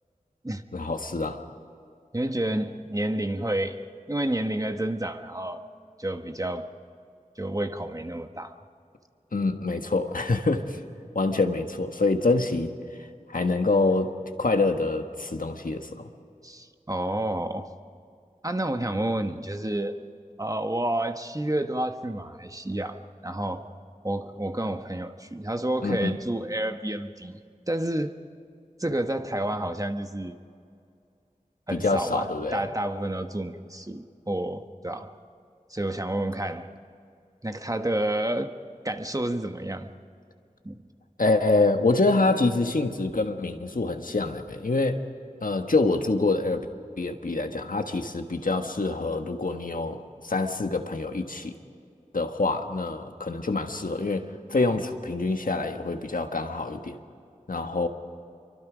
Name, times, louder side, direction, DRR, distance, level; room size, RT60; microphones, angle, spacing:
voice 1, 0.7-1.4 9.3-10.8 11.1-12.7 13.3-14.1 14.4-16.1 25.8-26.1 31.7-32.6 41.2-45.0 45.4-46.7 47.0-50.0 50.2-51.5 52.1-56.9 57.5-57.9, left 3 dB, 75° left, 5 dB, 1.5 m, -26 dB
voice 2, 2.1-3.8 4.1-5.6 6.0-6.7 7.4-8.6 16.4-17.7 18.4-20.0 20.4-23.0 23.2-23.7 24.0-28.2 28.8-30.4 31.7-35.1 35.7-36.7 37.4-38.5 38.8-39.9 40.6-40.8, right 1 dB, 25° right, 6 dB, 1.2 m, -30 dB
27.5 x 24.0 x 5.1 m, 2.5 s
wide cardioid pair, 50°, 14 cm